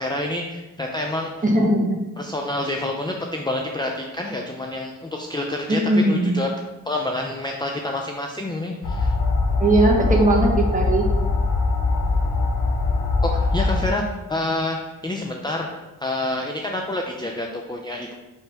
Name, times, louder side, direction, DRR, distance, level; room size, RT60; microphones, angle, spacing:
voice 1, 0.0-1.3 2.2-6.5 6.9-9.1 13.2-14.0 14.3-14.8 15.0-15.7 16.0-18.2, left 1 dB, 10° left, 1 dB, 0.4 m, -27 dB
voice 2, 1.4-2.0 5.7-6.4 9.6-11.1, right 1 dB, 20° right, -1 dB, 1.3 m, -19 dB
sound 1, 8.8-13.9, left 3 dB, 85° left, 0.9 m, -22 dB
5.7 x 5.7 x 3.5 m, 1.1 s
wide cardioid pair, 115°, 36 cm